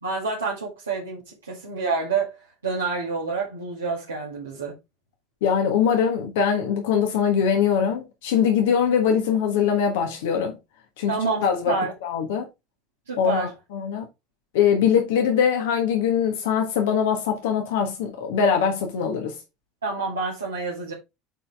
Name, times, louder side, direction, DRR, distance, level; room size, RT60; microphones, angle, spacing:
voice 1, 0.0-2.3 2.6-4.7 11.1-11.9 13.1-13.5 19.8-20.9, right 4 dB, 85° right, 2.0 m, -28 dB
voice 2, 5.4-10.6 11.0-11.1 11.4-11.7 12.0-12.4 13.2-14.0 14.5-19.3, left 7 dB, 70° left, 1.4 m, -22 dB
8.9 x 4.4 x 3.5 m
hypercardioid pair, 70°, 0 cm